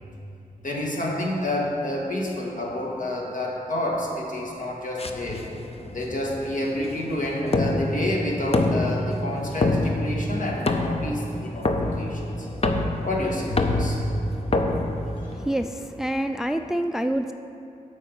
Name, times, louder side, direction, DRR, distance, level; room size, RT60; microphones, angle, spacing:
voice 1, 0.6-5.4 5.9-12.5 12.9-14.0 15.3-15.4, left 1 dB, 60° left, -2 dB, 1.8 m, -29 dB
sound 1, 5.0-15.7, left 2 dB, 40° left, 0.7 m, -26 dB
voice 2, 15.3-17.3, right 1 dB, 5° right, 8 dB, 0.3 m, -27 dB
8.3 x 5.3 x 7.3 m, 2.6 s
cardioid pair, 55°, 15 cm